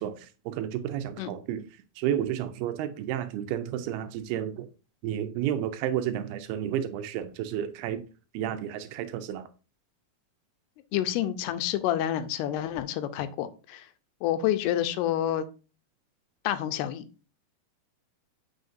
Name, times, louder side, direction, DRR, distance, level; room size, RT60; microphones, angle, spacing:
voice 1, 0.0-1.7 2.0-4.7 5.0-8.0 8.3-9.5, right 10 dB, 80° right, 2.6 m, -31 dB
voice 2, 10.9-13.9 14.2-15.5 16.4-17.1, left 11 dB, 85° left, 2.7 m, -28 dB
7.7 x 5.6 x 2.6 m
omnidirectional pair, 4.6 m